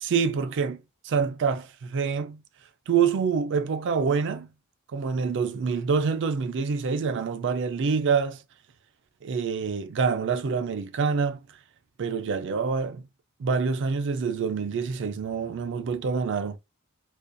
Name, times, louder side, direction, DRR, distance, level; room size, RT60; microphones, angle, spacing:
voice 1, 0.0-0.8 1.0-2.4 2.9-4.5 4.9-8.4 9.2-11.4 12.0-13.1 13.4-16.6, right 5 dB, 55° right, 0.4 m, -26 dB
2.4 x 2.2 x 2.4 m
head